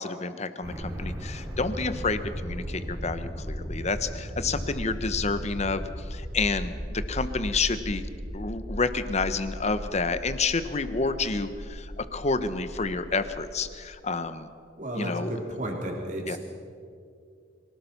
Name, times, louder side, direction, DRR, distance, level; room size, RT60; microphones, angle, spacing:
voice 1, 0.0-5.8 6.1-8.0 8.3-14.5 14.9-15.4 16.3-16.4, left 4 dB, 40° left, 11 dB, 1.0 m, -29 dB
sound 1, 0.6-13.6, equal, 15° right, 3.5 m, -36 dB
voice 2, 14.8-16.4, right 1 dB, 45° right, 0 dB, 3.6 m, -33 dB
24.5 x 18.0 x 6.0 m, 2.3 s
head